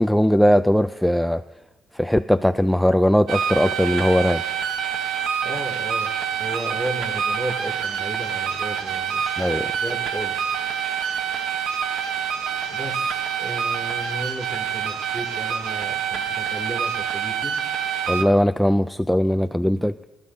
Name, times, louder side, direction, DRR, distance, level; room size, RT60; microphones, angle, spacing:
voice 1, 0.0-1.4 1.9-4.4 9.4-9.7 18.1-19.9, equal, 5° left, 10 dB, 0.4 m, -19 dB
sound 1, 3.3-18.2, right 7 dB, 85° right, 1.2 m, -26 dB
voice 2, 5.4-10.5 12.7-17.5, right 1 dB, 25° right, 3 dB, 2.8 m, -34 dB
25.5 x 13.0 x 2.8 m, 1.1 s
cardioid pair, 90°, 0 cm